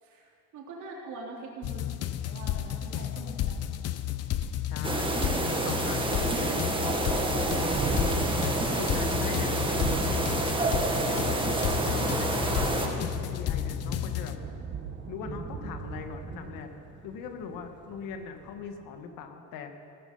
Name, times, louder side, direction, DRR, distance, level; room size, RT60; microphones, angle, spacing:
voice 1, 0.0-3.7 5.1-5.6, right 3 dB, 65° right, -2 dB, 3.7 m, -43 dB
sound 1, 1.6-14.4, left 11 dB, 50° left, 0.7 m, -32 dB
Thunderstorm, 4.2-4.3 4.7-4.8 5.1-18.7, right 5 dB, 35° right, 1.8 m, -39 dB
voice 2, 4.7-8.3 8.7-11.3 11.6-14.4 15.1-16.7 17.0-19.7, left 6 dB, 90° left, 5 dB, 1.7 m, -41 dB
sound 2, 4.8-12.9, right 2 dB, 15° right, 1.7 m, -28 dB
17.5 x 13.5 x 5.5 m, 2.5 s
cardioid pair, 135°, 32 cm